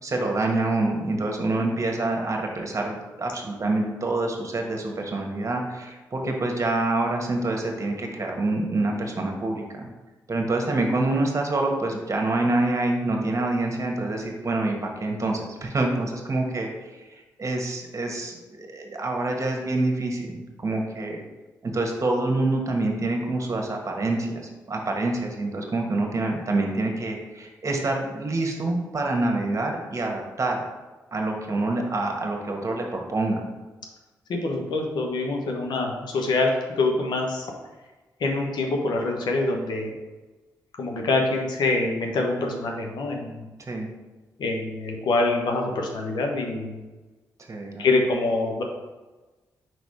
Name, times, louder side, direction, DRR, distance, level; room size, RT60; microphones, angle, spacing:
voice 1, 0.0-9.9 10.3-16.7 17.4-21.2 21.6-30.6 31.1-33.4 43.6-43.9 47.5-47.9, right 2 dB, 40° right, 1 dB, 1.3 m, -26 dB
voice 2, 34.3-37.5 38.2-40.0 40.8-43.5 44.4-46.8 47.8-48.6, left 2 dB, 70° left, 2 dB, 1.1 m, -25 dB
4.7 x 4.1 x 4.9 m, 1.2 s
supercardioid pair, 45°, 8 cm